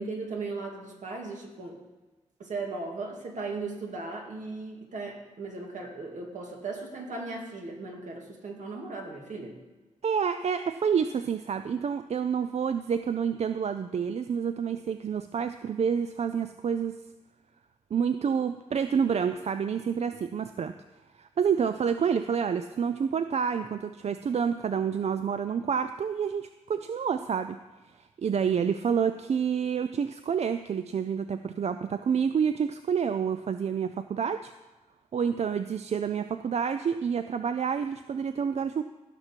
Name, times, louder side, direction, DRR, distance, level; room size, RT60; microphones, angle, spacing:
voice 1, 0.0-1.8 2.4-9.5, right 3 dB, 80° right, 0 dB, 2.2 m, -37 dB
voice 2, 10.0-17.0 17.9-20.7 21.2-27.6 28.0-34.5 35.1-38.8, right 7 dB, 60° right, 10 dB, 0.4 m, -28 dB
16.5 x 6.0 x 4.5 m, 1.2 s
wide cardioid pair, 85°, 12 cm